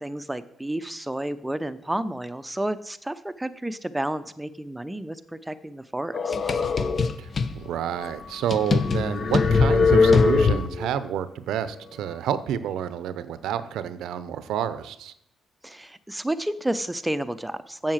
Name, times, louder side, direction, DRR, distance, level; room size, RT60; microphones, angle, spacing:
voice 1, 0.0-6.3 15.6-17.9, right 1 dB, 10° right, 12 dB, 0.7 m, -31 dB
sound 1, 6.1-7.5 8.0-8.1 8.5-10.9, left 4 dB, 40° left, 0.8 m, -21 dB
voice 2, 7.2-15.1, right 9 dB, 80° right, 14 dB, 0.7 m, -29 dB
7.8 x 7.3 x 7.4 m, 0.74 s
cardioid pair, 90°, 0 cm